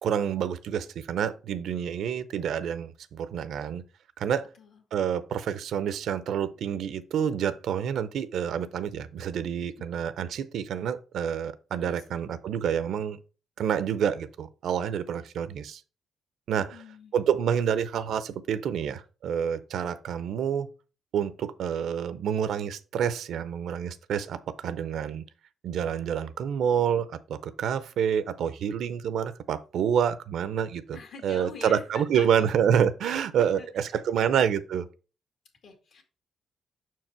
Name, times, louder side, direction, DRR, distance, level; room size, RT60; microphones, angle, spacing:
voice 1, 0.0-3.8 4.2-4.5 4.9-13.2 13.6-15.8 16.5-16.7 17.1-20.7 21.1-25.2 25.6-31.0 31.2-34.9, right 8 dB, 75° right, 0.5 m, -28 dB
voice 2, 11.8-12.2 16.5-17.1 30.9-32.5 33.0-34.3 35.6-36.0, left 5 dB, 65° left, 1.9 m, -46 dB
5.8 x 4.6 x 4.3 m
cardioid pair, 95°, 0 cm